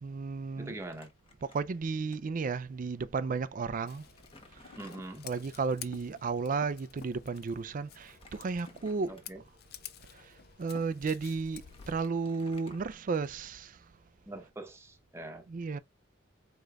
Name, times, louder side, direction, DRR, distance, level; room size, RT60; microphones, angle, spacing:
voice 1, 0.0-0.8 1.4-4.1 4.5-4.7 5.2-9.2 10.1-13.8 15.5-15.8, right 4 dB, 45° right, 0.4 m, -34 dB
voice 2, 0.6-1.1 4.8-5.3 9.1-9.4 14.3-15.5, right 2 dB, 15° right, 0.9 m, -43 dB
Crumpling crinkling, 0.8-2.2 2.4-2.6 3.4-3.5 3.9-5.7 7.9-9.5 10.1-10.3 11.1-11.2 11.5-13.6, left 2 dB, 30° left, 1.0 m, -58 dB
Scissors, 3.9-12.0, left 9 dB, 55° left, 0.5 m, -51 dB
5.0 x 3.8 x 2.3 m
head